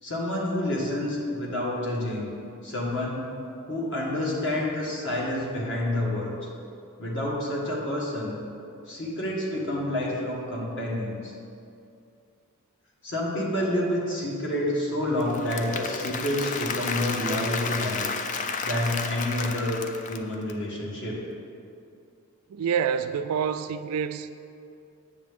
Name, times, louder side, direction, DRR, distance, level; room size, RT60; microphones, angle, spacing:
voice 1, 0.0-2.3 2.6-3.3 3.7-6.3 7.0-8.4 8.9-11.3 13.0-18.1 18.6-21.2, left 1 dB, 55° left, 1.7 m, -28 dB
Applause / Crowd, 15.2-20.5, left 5 dB, 35° left, 0.3 m, -32 dB
voice 2, 22.5-24.3, right 7 dB, 75° right, 0.3 m, -27 dB
8.6 x 6.9 x 3.6 m
head